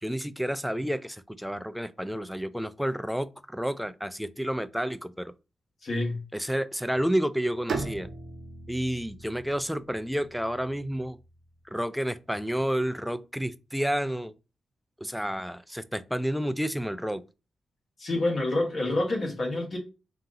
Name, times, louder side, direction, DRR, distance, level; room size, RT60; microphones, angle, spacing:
voice 1, 0.0-5.3 6.3-8.1 8.7-11.2 11.7-14.3 15.0-17.2, equal, ahead, 0.3 m, -30 dB
voice 2, 5.8-6.2 18.0-19.8, left 2 dB, 55° left, 1.1 m, -27 dB
Bowed string instrument, 7.7-11.6, right 4 dB, 70° right, 0.7 m, -39 dB
3.8 x 2.8 x 3.7 m
wide cardioid pair, 120°, 0 cm